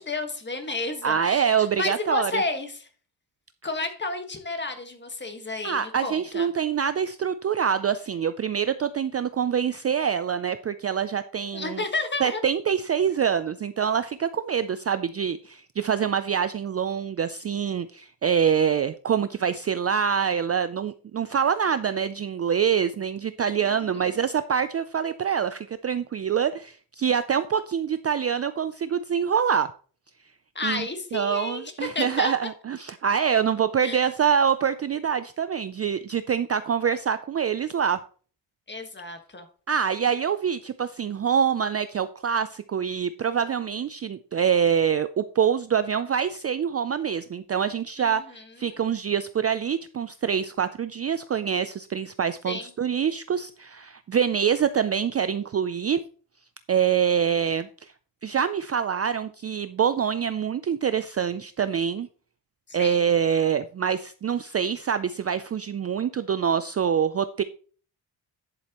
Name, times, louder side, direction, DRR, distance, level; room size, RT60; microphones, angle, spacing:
voice 1, 0.0-2.9 3.6-6.5 11.5-12.4 23.6-24.2 30.5-32.3 33.8-34.0 38.7-39.5 48.0-48.8 52.4-52.7 62.7-63.0, left 3 dB, 25° left, 6 dB, 1.6 m, -32 dB
voice 2, 1.0-2.3 5.6-11.8 12.2-29.7 30.6-38.0 39.7-56.0 56.7-57.7 58.2-62.1 62.7-67.4, right 7 dB, 35° right, 12 dB, 0.4 m, -25 dB
10.5 x 7.7 x 3.0 m, 0.40 s
cardioid pair, 115°, 45 cm